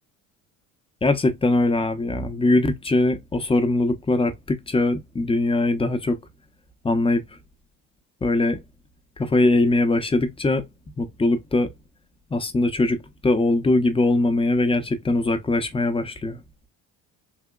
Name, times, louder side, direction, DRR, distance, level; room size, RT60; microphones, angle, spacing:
voice 1, 1.0-6.2 6.8-7.2 8.2-8.6 9.2-10.6 11.0-11.7 12.3-13.0 13.2-16.4, left 2 dB, 15° left, 0.7 m, -21 dB
3.5 x 2.8 x 2.3 m
cardioid pair, 105°, 36 cm